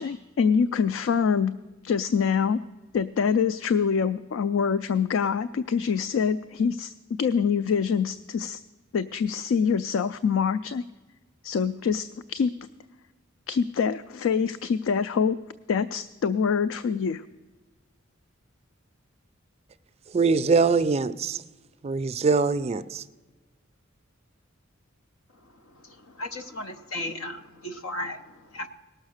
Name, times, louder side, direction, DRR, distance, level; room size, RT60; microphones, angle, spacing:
voice 1, 0.0-1.5 1.8-2.6 2.9-6.9 7.2-8.6 8.9-10.8 11.4-12.5 13.5-15.4 15.7-17.2, left 6 dB, 70° left, 0.3 m, -25 dB
voice 2, 20.1-21.4 21.8-23.0, right 4 dB, 30° right, 0.3 m, -23 dB
voice 3, 25.8-28.7, left 1 dB, 90° left, 0.9 m, -36 dB
18.0 x 6.4 x 6.4 m
head